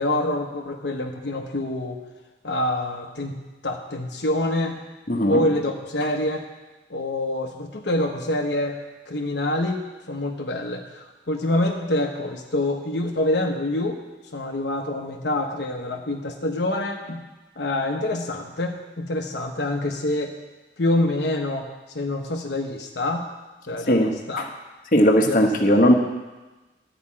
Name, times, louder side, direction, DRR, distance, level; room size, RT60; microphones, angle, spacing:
voice 1, 0.0-2.0 2.4-3.4 3.6-4.8 5.3-6.4 6.9-8.8 9.1-14.0 14.3-17.2 17.6-20.3 20.8-21.7 21.9-23.3 23.7-24.5 25.2-25.8, left 1 dB, 75° left, 2 dB, 1.0 m, -26 dB
voice 2, 5.1-5.4 23.9-24.5 24.9-25.9, equal, 45° left, 2 dB, 1.2 m, -18 dB
12.5 x 5.1 x 8.6 m, 1.2 s
head